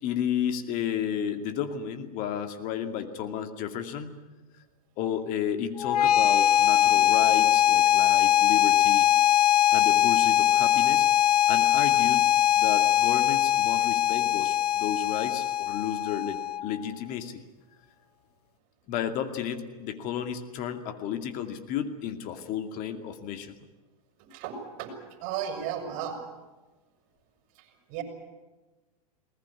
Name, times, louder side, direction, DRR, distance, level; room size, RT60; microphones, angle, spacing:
voice 1, 0.0-4.1 5.0-9.1 9.7-11.1 11.5-12.2 12.6-17.4 18.9-23.5, left 9 dB, 40° left, 7 dB, 2.4 m, -32 dB
sound 1, 5.8-16.8, left 11 dB, 80° left, 0.8 m, -22 dB
voice 2, 25.2-26.2 27.9-28.0, right 9 dB, 45° right, 6 dB, 5.9 m, -33 dB
20.5 x 19.5 x 9.7 m, 1.2 s
hypercardioid pair, 125°, 20 cm